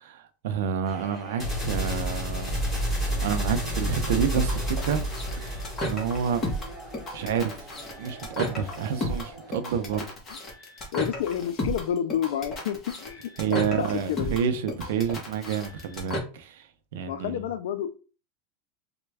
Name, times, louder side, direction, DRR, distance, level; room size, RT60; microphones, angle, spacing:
voice 1, 0.0-2.6 3.2-5.0 5.4-6.6 7.1-7.5 8.0-10.1 13.4-16.7 16.9-17.5, right 7 dB, 75° right, 0.5 m, -29 dB
sound 1, 0.8-10.1, equal, 5° left, 1.4 m, -32 dB
sound 2, 3.9-16.2, left 1 dB, 20° left, 1.0 m, -34 dB
voice 2, 10.9-14.4 17.1-18.0, left 10 dB, 80° left, 0.4 m, -30 dB
3.3 x 2.2 x 3.3 m
supercardioid pair, 160°, 0 cm